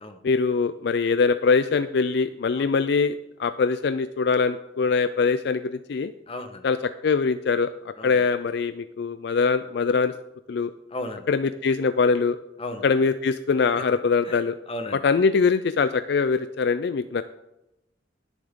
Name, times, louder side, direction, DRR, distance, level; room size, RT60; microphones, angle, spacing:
voice 1, 0.2-3.1 3.4-5.6 5.9-6.1 6.6-10.1 10.5-10.7 11.3-12.4 12.8-14.6 14.9-17.2, left 5 dB, 65° left, 12 dB, 0.4 m, -23 dB
voice 2, 6.3-6.6 8.0-8.2 10.9-11.3 12.6-12.8 14.2-14.4 14.7-15.0, left 1 dB, 30° left, 7 dB, 1.1 m, -34 dB
17.5 x 7.2 x 3.7 m, 0.90 s
head